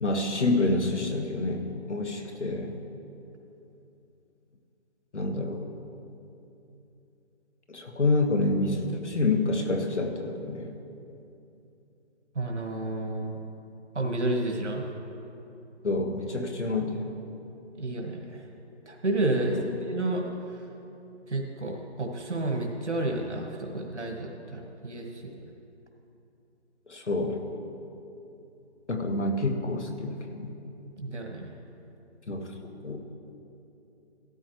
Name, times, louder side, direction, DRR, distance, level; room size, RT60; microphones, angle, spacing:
voice 1, 0.0-2.8 5.1-5.7 7.7-10.7 15.8-17.0 19.4-19.6 26.9-27.4 28.9-30.5 32.3-32.5 32.8-33.0, left 2 dB, 90° left, 4 dB, 1.7 m, -28 dB
voice 2, 12.4-13.3 13.9-14.8 17.8-18.4 18.9-20.2 21.3-25.5 31.0-31.5, right 2 dB, 85° right, 1 dB, 1.9 m, -30 dB
15.0 x 12.5 x 3.2 m, 2.8 s
figure-of-eight pair, 180°, 34 cm